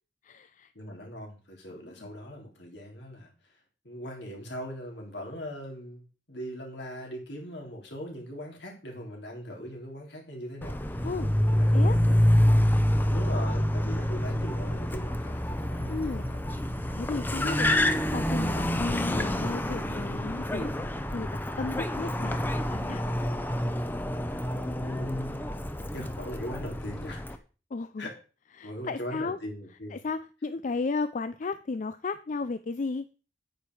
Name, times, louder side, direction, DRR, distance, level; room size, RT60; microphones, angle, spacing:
voice 1, 0.2-0.7 1.8-2.1 11.0-11.3 11.7-12.0 15.9-16.2 16.9-17.8 18.1-20.7 21.1-21.3 21.6-23.1 27.7-28.1 28.6-29.4 29.9-33.1, left 3 dB, 45° left, 12 dB, 0.4 m, -34 dB
voice 2, 0.8-3.3 3.8-11.1 11.5-12.3 13.1-16.6 24.8-27.2 28.0-28.1 28.6-30.0, equal, 70° left, 1 dB, 3.7 m, -40 dB
Car, 10.6-27.4, left 1 dB, 10° left, 0.8 m, -27 dB
9.1 x 8.8 x 4.8 m, 0.36 s
head